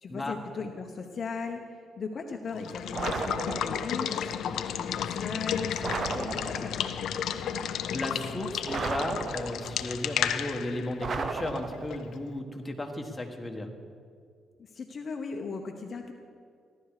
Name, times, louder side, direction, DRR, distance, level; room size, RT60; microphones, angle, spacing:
voice 1, 0.0-7.0 14.6-16.1, left 5 dB, 45° left, 3 dB, 0.9 m, -38 dB
Water / Water tap faucet / Liquid, 2.5-12.2, left 8 dB, 75° left, 0.6 m, -33 dB
sound 1, 2.9-4.0 5.8-6.9 8.7-9.8 11.0-12.1, right 4 dB, 45° right, 0.7 m, -34 dB
voice 2, 7.9-13.7, left 1 dB, 15° left, 2 dB, 1.6 m, -35 dB
15.5 x 11.5 x 4.9 m, 2.3 s
cardioid pair, 90°, 0 cm